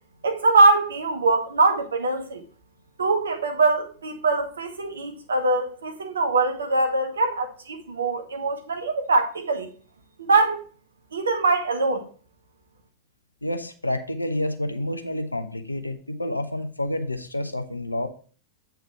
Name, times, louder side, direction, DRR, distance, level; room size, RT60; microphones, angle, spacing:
voice 1, 0.2-2.4 3.0-9.7 10.2-10.6 11.1-12.1, right 3 dB, 70° right, 1.1 m, -22 dB
voice 2, 13.4-18.1, left 1 dB, 85° left, 0.7 m, -29 dB
8.2 x 3.5 x 4.7 m
figure-of-eight pair, 90°, 0 cm